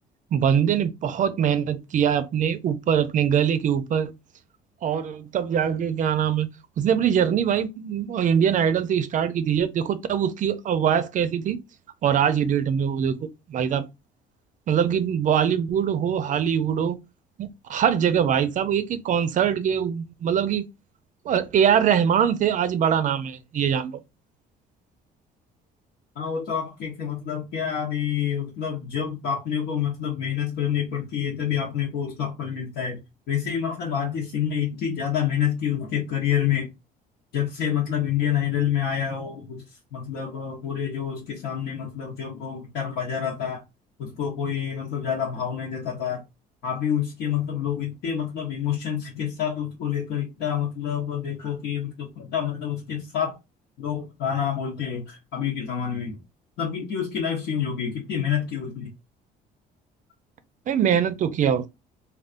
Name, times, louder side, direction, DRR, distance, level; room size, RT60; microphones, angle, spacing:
voice 1, 0.3-4.1 4.8-6.5 6.8-11.6 12.0-13.9 14.7-17.0 17.4-20.6 21.3-24.0 60.7-61.7, right 8 dB, 50° right, 0.5 m, -23 dB
voice 2, 26.1-33.0 33.3-36.7 37.3-39.6 39.9-43.6 44.0-46.2 46.6-53.4 53.8-56.2 56.6-58.9, left 8 dB, 80° left, 1.0 m, -28 dB
3.5 x 2.3 x 2.5 m
cardioid pair, 110°, 17 cm